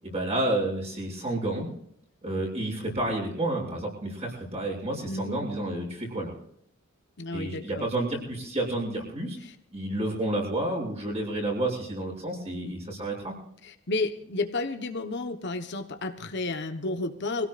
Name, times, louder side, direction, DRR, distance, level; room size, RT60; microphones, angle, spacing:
voice 1, 0.0-1.7 2.2-6.3 7.3-9.4 9.7-13.3, right 1 dB, 30° right, -1 dB, 7.3 m, -30 dB
voice 2, 5.1-5.4 7.2-7.9 9.4-9.5 12.5-12.7 13.6-17.5, left 2 dB, 55° left, 7 dB, 1.2 m, -32 dB
24.5 x 17.0 x 2.5 m, 0.67 s
head